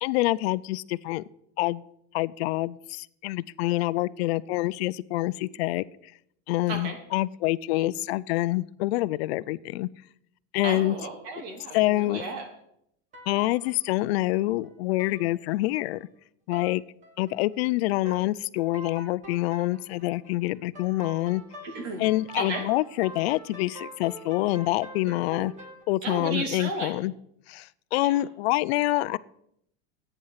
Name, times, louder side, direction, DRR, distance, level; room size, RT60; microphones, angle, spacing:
voice 1, 0.0-1.2 1.6-1.9 2.1-5.8 6.5-9.9 10.5-11.0 11.7-12.2 13.3-16.0 16.5-16.8 17.2-21.4 22.0-25.5 25.9-27.1 27.5-29.2, left 18 dB, 65° left, 19 dB, 0.5 m, -26 dB
voice 2, 6.7-7.0 10.6-12.5 21.6-22.0 22.3-22.7 26.0-27.0 28.0-28.2, right 3 dB, 45° right, 4 dB, 2.7 m, -34 dB
sound 1, 13.1-14.7 15.0-15.2 15.5-16.0 16.5-16.7 17.0-17.6 18.0-18.2 18.6-25.8, right 1 dB, 20° right, 2.2 m, -45 dB
14.0 x 9.3 x 5.7 m, 0.74 s
supercardioid pair, 175°, 34 cm